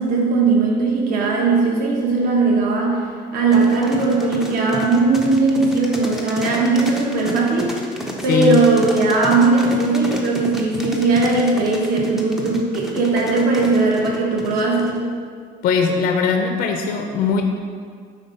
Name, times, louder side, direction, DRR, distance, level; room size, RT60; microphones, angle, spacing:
voice 1, 0.0-3.1 3.3-7.8 8.2-15.0, right 3 dB, 55° right, -2 dB, 1.4 m, -18 dB
sound 1, 3.5-15.0, equal, ahead, 0.6 m, -31 dB
voice 2, 8.3-8.6 15.6-17.4, left 6 dB, 55° left, 4 dB, 0.6 m, -19 dB
9.3 x 3.8 x 5.4 m, 2.1 s
cardioid pair, 175°, 18 cm